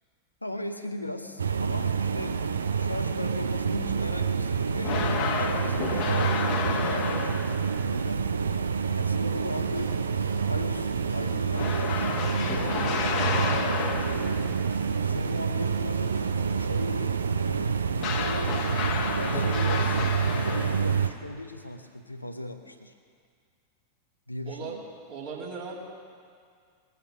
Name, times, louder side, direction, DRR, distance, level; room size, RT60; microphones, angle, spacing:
voice 1, 0.4-2.4 2.8-8.3 8.9-10.0 10.5-14.6 15.1-18.6 18.9-22.9 24.3-24.8, left 1 dB, 85° left, 6 dB, 1.0 m, -38 dB
sound 1, 1.4-21.1, right 6 dB, 70° right, 0.6 m, -28 dB
sound 2, 4.8-7.8 11.5-14.4 18.0-21.1, left 5 dB, 40° left, 1.4 m, -31 dB
sound 3, 9.5-16.7, right 1 dB, 90° right, 1.6 m, -46 dB
voice 2, 24.4-24.8 25.1-25.8, right 5 dB, 45° right, -5 dB, 3.1 m, -37 dB
20.5 x 8.6 x 6.3 m, 2.1 s
figure-of-eight pair, 90°, 0 cm